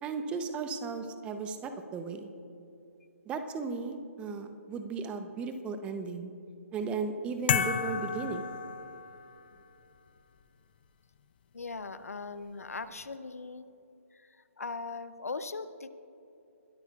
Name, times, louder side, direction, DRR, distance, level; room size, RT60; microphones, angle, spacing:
voice 1, 0.0-2.3 3.3-6.3 6.7-8.5, right 4 dB, 15° right, 8 dB, 0.7 m, -36 dB
sound 1, 7.5-9.4, left 8 dB, 40° left, 0.5 m, -31 dB
voice 2, 11.5-13.7 14.1-15.9, left 4 dB, 80° left, 13 dB, 0.7 m, -40 dB
22.0 x 12.5 x 2.4 m, 2.8 s
figure-of-eight pair, 140°, 8 cm